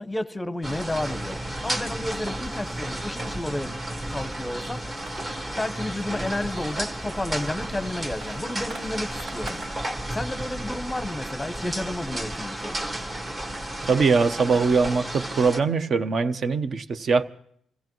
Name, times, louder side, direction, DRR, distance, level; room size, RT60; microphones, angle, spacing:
voice 1, 0.0-3.8 4.1-4.8 5.6-9.6 10.1-12.8, left 1 dB, 15° left, 0.8 m, -31 dB
sound 1, 0.6-15.6, right 1 dB, 30° right, 1.7 m, -33 dB
sound 2, 4.7-9.7, right 2 dB, 75° right, 3.6 m, -47 dB
voice 2, 13.9-17.2, right 4 dB, 50° right, 0.8 m, -22 dB
26.5 x 16.0 x 3.1 m
cardioid pair, 90°, 0 cm